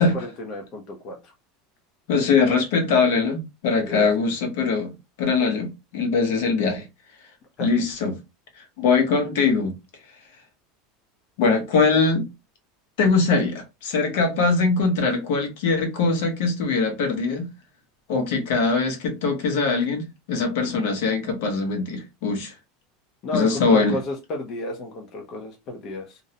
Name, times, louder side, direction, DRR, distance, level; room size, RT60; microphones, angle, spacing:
voice 1, 0.0-1.3 3.9-4.1 7.6-7.7 23.2-26.2, left 1 dB, 35° left, 0.6 m, -32 dB
voice 2, 2.1-4.9 5.2-6.8 7.6-8.2 8.8-9.8 11.4-12.3 13.0-17.5 18.1-22.5 23.3-24.0, left 4 dB, 70° left, 0.9 m, -22 dB
2.5 x 2.1 x 2.7 m
supercardioid pair, 165°, 0 cm